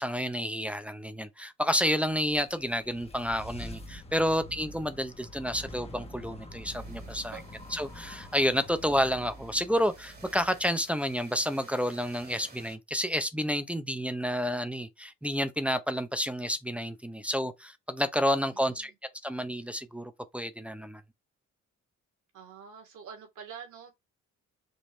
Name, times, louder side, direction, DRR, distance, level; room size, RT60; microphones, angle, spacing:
voice 1, 0.0-7.3 7.7-18.9 19.2-21.0, equal, 5° right, 0.6 m, -30 dB
sound 1, 2.1-11.1, equal, 20° left, 1.1 m, -46 dB
sound 2, 6.7-12.8, right 3 dB, 35° right, 1.9 m, -54 dB
voice 2, 18.4-18.9 22.3-23.9, right 7 dB, 80° right, 2.3 m, -46 dB
5.3 x 2.9 x 3.1 m
cardioid pair, 90°, 30 cm